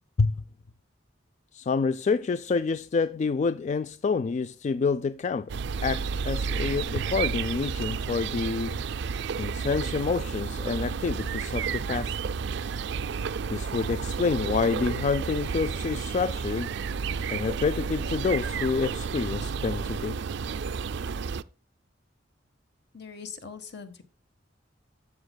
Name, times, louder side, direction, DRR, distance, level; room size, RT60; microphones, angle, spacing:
voice 1, 1.5-5.6 5.8-8.8 9.4-12.2 13.5-16.7 17.3-20.2, left 4 dB, 40° left, 0.3 m, -28 dB
sound 1, 5.5-21.4, right 5 dB, 65° right, 0.4 m, -31 dB
voice 2, 22.9-24.0, left 5 dB, 60° left, 1.3 m, -41 dB
12.5 x 7.2 x 2.2 m
head